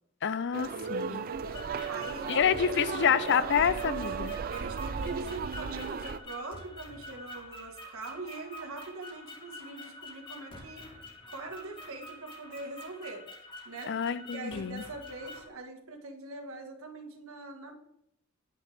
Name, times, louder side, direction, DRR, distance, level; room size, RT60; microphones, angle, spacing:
voice 1, 0.2-1.2 2.3-4.3 13.9-14.8, left 7 dB, 55° left, 15 dB, 0.4 m, -28 dB
sound 1, 0.5-6.2, right 6 dB, 45° right, 0.4 m, -35 dB
voice 2, 1.1-4.1 4.5-10.9 11.3-13.2 13.6-14.0 14.3-17.7, right 3 dB, 80° right, 3 dB, 1.7 m, -43 dB
sound 2, 1.5-15.5, left 1 dB, 25° left, 2.0 m, -47 dB
9.4 x 8.3 x 3.5 m, 0.75 s
head